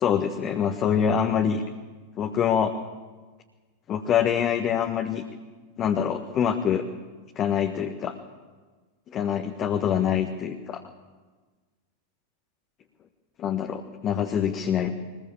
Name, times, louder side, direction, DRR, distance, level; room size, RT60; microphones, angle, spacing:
voice 1, 0.0-1.6 2.2-2.8 3.9-5.2 5.8-6.9 7.3-8.2 9.1-10.8 13.4-14.9, left 8 dB, 30° left, 5 dB, 1.4 m, -25 dB
22.5 x 20.0 x 7.3 m, 1.4 s
figure-of-eight pair, 90°, 0 cm